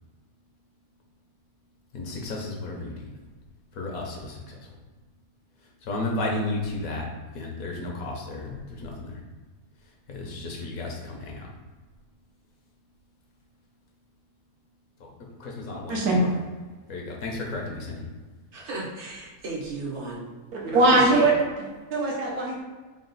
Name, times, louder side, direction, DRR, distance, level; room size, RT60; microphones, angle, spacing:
voice 1, 1.9-2.9 3.8-4.6 5.8-7.0 7.3-9.2 10.1-11.5 15.0-15.1 15.4-16.0 16.9-18.0, left 2 dB, 75° left, 0 dB, 1.2 m, -33 dB
voice 2, 15.9-16.2 20.5-21.3 21.9-22.6, right 2 dB, 75° right, -2 dB, 1.4 m, -21 dB
voice 3, 18.5-20.2 20.9-21.3, right 3 dB, 55° right, -4 dB, 1.0 m, -34 dB
3.9 x 2.3 x 3.9 m, 1.3 s
omnidirectional pair, 1.6 m